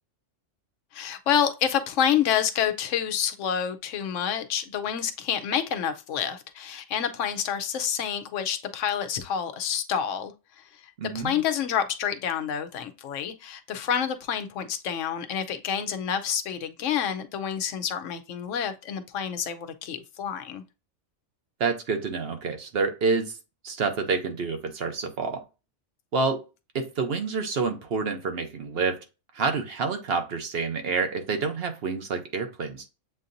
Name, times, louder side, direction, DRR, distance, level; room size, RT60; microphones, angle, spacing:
voice 1, 0.9-10.3 11.1-20.6, left 8 dB, 85° left, 1.0 m, -28 dB
voice 2, 11.0-11.4 21.6-23.4 23.6-25.4 26.1-26.4 26.7-29.0 29.3-32.9, right 4 dB, 60° right, 1.0 m, -28 dB
7.5 x 2.7 x 2.6 m
omnidirectional pair, 1.3 m